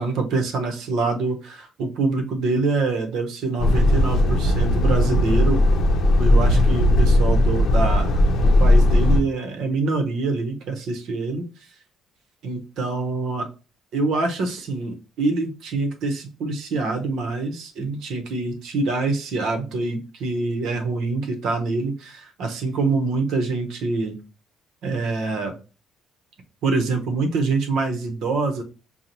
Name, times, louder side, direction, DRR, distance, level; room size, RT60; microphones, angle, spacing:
voice 1, 0.0-5.6 6.2-11.5 12.4-13.5 13.9-24.2 24.8-25.5 26.6-28.6, right 3 dB, 70° right, 4 dB, 0.9 m, -25 dB
Truck, 3.6-9.2, left 1 dB, 55° left, 0.7 m, -17 dB
5.2 x 2.3 x 2.9 m, 0.32 s
cardioid pair, 145°, 0 cm